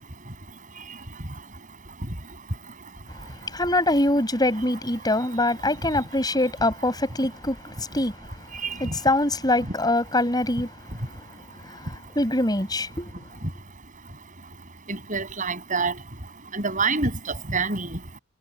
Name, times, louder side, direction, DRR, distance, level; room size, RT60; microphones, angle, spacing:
voice 1, 3.1-11.3 11.5-13.3, left 1 dB, 20° left, 5.9 m, -25 dB
voice 2, 8.6-8.9 14.9-15.9 16.5-18.0, right 4 dB, 40° right, 6.9 m, -26 dB
head